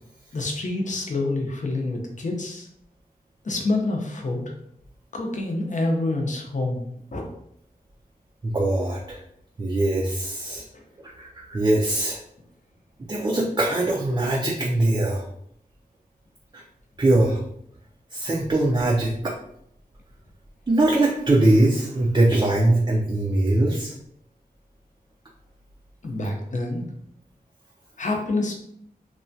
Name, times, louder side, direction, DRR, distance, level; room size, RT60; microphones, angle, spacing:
voice 1, 0.3-2.7 3.4-4.4 5.1-7.2 26.0-26.8 28.0-28.5, left 2 dB, 50° left, 2 dB, 0.6 m, -27 dB
voice 2, 8.4-9.2 9.6-10.6 11.2-12.2 13.1-15.2 17.0-17.4 18.1-19.3 20.7-23.9, right 2 dB, 25° right, -2 dB, 0.4 m, -21 dB
3.0 x 2.2 x 2.6 m, 0.72 s
wide cardioid pair, 80°, 16 cm